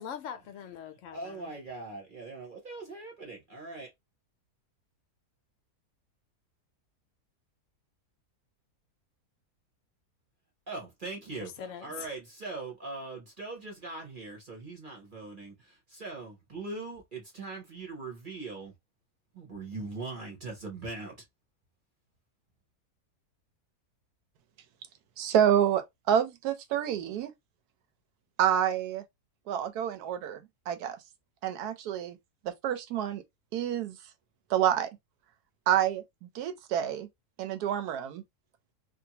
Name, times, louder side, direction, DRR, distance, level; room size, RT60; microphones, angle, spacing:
voice 1, 0.0-1.5 11.4-12.1, left 8 dB, 65° left, 0.8 m, -42 dB
voice 2, 1.1-3.9 10.7-18.7 19.3-21.2, right 3 dB, 40° right, 0.9 m, -41 dB
voice 3, 25.2-27.3 28.4-29.0 29.5-30.4 30.7-31.0 31.4-32.2 32.4-33.2 33.5-34.0 34.5-34.9 35.7-36.0 36.3-37.1 37.4-38.2, right 10 dB, 75° right, 1.2 m, -28 dB
2.7 x 2.5 x 2.8 m
omnidirectional pair, 1.7 m